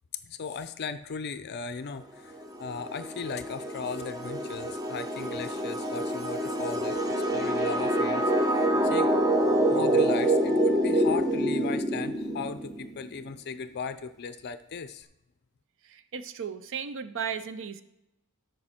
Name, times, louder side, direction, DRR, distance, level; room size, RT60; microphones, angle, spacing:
voice 1, 0.3-7.0 7.3-8.3 8.8-9.1 9.7-15.1, left 5 dB, 50° left, 12 dB, 0.4 m, -37 dB
sound 1, 2.4-12.9, right 1 dB, 15° right, 0.7 m, -26 dB
Wind instrument woodwind instrument, 6.9-11.8, left 4 dB, 15° left, 0.8 m, -46 dB
voice 2, 15.9-17.8, right 7 dB, 60° right, 12 dB, 0.6 m, -35 dB
13.0 x 5.4 x 4.3 m, 0.91 s
head